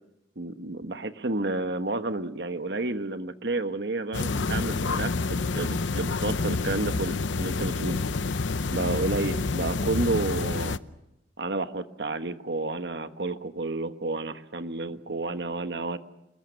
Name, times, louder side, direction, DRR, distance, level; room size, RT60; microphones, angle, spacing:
voice 1, 0.4-8.0 8.7-10.8 11.4-16.0, right 2 dB, 65° right, 9 dB, 1.3 m, -30 dB
sound 1, 4.1-10.8, left 3 dB, 90° left, 0.7 m, -28 dB
27.5 x 21.0 x 6.5 m, 0.90 s
head